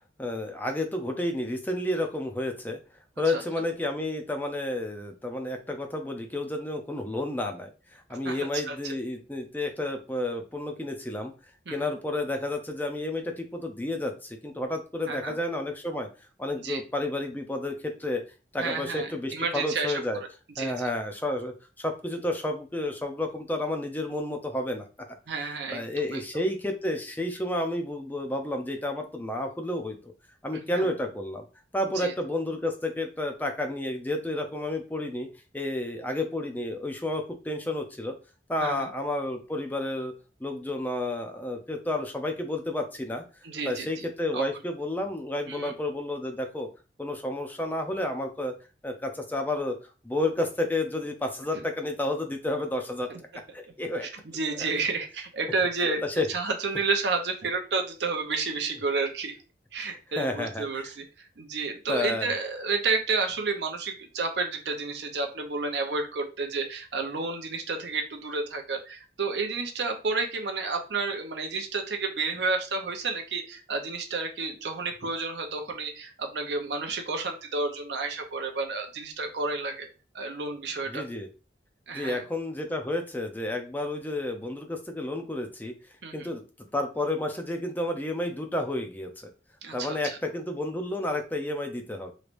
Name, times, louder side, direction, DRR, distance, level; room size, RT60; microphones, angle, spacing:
voice 1, 0.2-2.8 3.2-11.3 11.7-16.1 16.4-18.2 18.5-20.2 20.6-24.9 25.7-30.0 30.4-31.4 31.7-35.3 35.5-38.1 38.5-40.1 40.4-43.2 43.6-46.7 47.0-48.5 48.8-49.8 50.0-53.1 53.5-54.1 54.5-54.7 55.8-56.3 59.8-60.9 61.9-62.3 80.9-81.3 81.9-85.7 86.1-86.4 86.7-89.3 89.7-92.1, left 1 dB, 10° left, 4 dB, 0.5 m, -31 dB
voice 2, 8.1-8.8 11.7-11.8 15.1-15.3 16.6-16.8 18.6-20.3 20.6-20.7 25.3-25.8 26.1-26.2 30.5-30.9 31.9-32.1 38.6-38.9 43.4-44.0 44.3-44.5 45.5-45.7 53.1-53.2 54.0-59.3 59.7-61.0 61.4-79.9 80.1-81.0 81.9-82.2 86.0-86.3 89.6-90.2, right 4 dB, 80° right, 4 dB, 0.7 m, -31 dB
3.2 x 3.1 x 2.5 m, 0.33 s
head